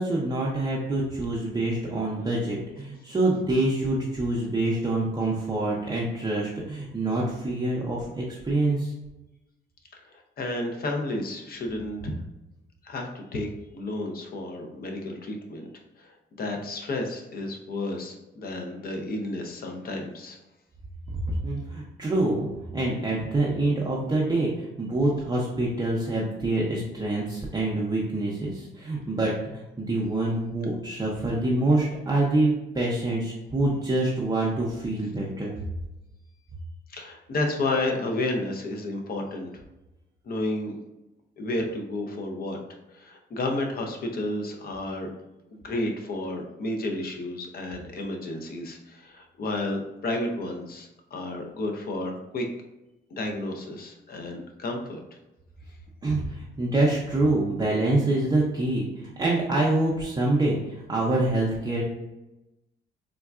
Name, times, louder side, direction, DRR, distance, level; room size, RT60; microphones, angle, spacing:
voice 1, 0.0-8.9 21.1-35.6 56.0-61.8, right 2 dB, 20° right, -5 dB, 0.6 m, -26 dB
voice 2, 10.0-12.1 12.8-15.7 16.0-20.4 36.9-39.6 40.2-40.8 41.4-42.6 42.9-45.1 45.5-52.4 53.1-55.0, left 2 dB, 50° left, 2 dB, 0.6 m, -31 dB
3.6 x 2.2 x 2.4 m, 0.96 s
cardioid pair, 90°, 20 cm